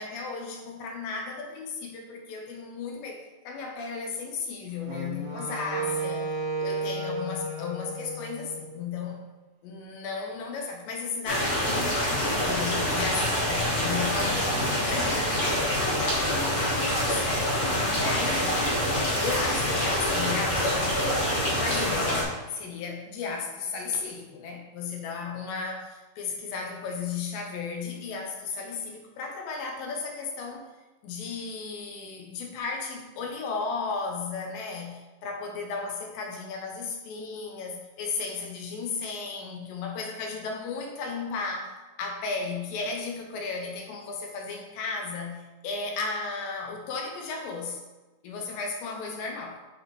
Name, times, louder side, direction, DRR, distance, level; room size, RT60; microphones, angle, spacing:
voice 1, 0.0-9.2 9.6-18.6 19.2-21.0 21.5-30.6 31.0-47.8 48.2-49.6, left 4 dB, 75° left, 2 dB, 2.4 m, -35 dB
Wind instrument woodwind instrument, 4.8-9.1, right 3 dB, 80° right, 3.2 m, -33 dB
sound 1, 11.2-22.2, equal, 45° left, 1.0 m, -26 dB
8.4 x 3.6 x 4.1 m, 1.2 s
omnidirectional pair, 4.3 m